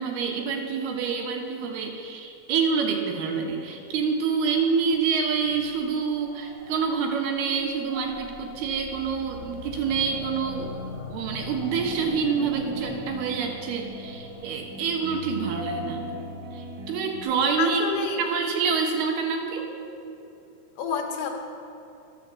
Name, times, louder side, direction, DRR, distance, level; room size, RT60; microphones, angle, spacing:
voice 1, 0.0-10.7 11.1-16.1 16.5-17.8 18.2-19.7, right 5 dB, 90° right, 2 dB, 3.1 m, -27 dB
sound 1, 4.3-16.8, left 2 dB, 45° right, 3.0 m, -46 dB
sound 2, 7.9-13.5, left 3 dB, 50° left, 1.5 m, -40 dB
sound 3, 11.7-17.2, right 2 dB, 65° right, 2.8 m, -39 dB
voice 2, 17.6-18.2 20.8-21.3, left 6 dB, 85° left, 2 dB, 3.2 m, -28 dB
12.5 x 7.2 x 7.5 m, 2.8 s
omnidirectional pair, 4.4 m